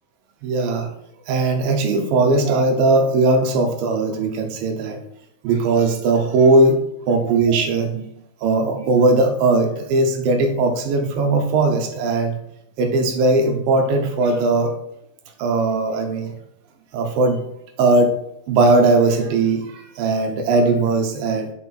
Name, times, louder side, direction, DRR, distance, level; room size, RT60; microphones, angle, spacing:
voice 1, 0.4-0.9 1.3-5.0 5.4-8.1 8.4-12.4 12.8-14.7 15.4-16.3 16.9-17.4 17.8-18.2 18.5-21.5, right 2 dB, 75° right, 4 dB, 2.3 m, -18 dB
6.2 x 4.5 x 4.3 m, 0.78 s
omnidirectional pair, 4.4 m